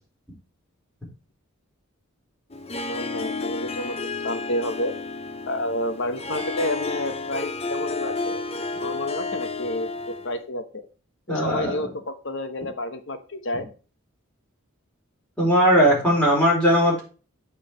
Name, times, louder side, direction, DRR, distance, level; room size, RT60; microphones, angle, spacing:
Harp, 2.5-10.4, left 3 dB, 30° left, 0.7 m, -31 dB
voice 1, 2.9-4.0 4.2-4.9 5.5-8.4 8.8-10.9 11.3-13.6, left 1 dB, 55° left, 10 dB, 1.0 m, -30 dB
voice 2, 11.3-11.9 15.4-17.0, equal, 5° left, -5 dB, 4.5 m, -19 dB
8.7 x 5.1 x 6.2 m, 0.36 s
head